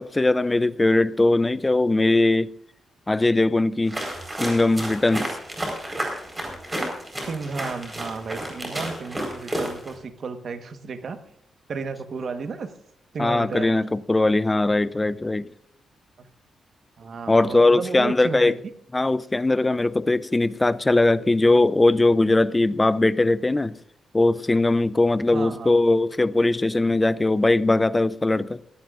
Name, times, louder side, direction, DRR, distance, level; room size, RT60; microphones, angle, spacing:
voice 1, 0.0-2.5 3.1-4.0 4.4-5.4 13.2-15.5 17.3-18.6 18.9-23.8 24.1-28.6, left 2 dB, 15° left, 0.4 m, -20 dB
sound 1, 3.9-10.0, right 1 dB, 15° right, 4.2 m, -31 dB
voice 2, 7.2-11.2 11.7-12.7 13.1-13.8 16.2-16.3 17.0-18.6 25.3-25.7, right 4 dB, 45° right, 1.2 m, -33 dB
22.0 x 15.5 x 2.5 m
wide cardioid pair, 165°, 0 cm